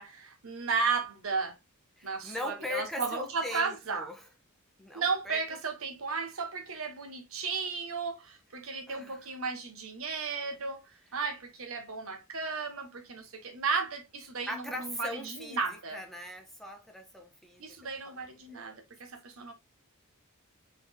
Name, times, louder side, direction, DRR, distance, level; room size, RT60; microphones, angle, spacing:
voice 1, 0.0-1.6 2.0-4.1 4.9-10.8 11.1-16.0 17.6-19.5, right 5 dB, 70° right, 1.1 m, -34 dB
voice 2, 2.0-4.3 4.8-5.4 8.9-9.3 14.5-17.8 18.0-18.2 18.5-18.8, left 1 dB, ahead, 0.8 m, -40 dB
4.0 x 3.3 x 3.5 m
head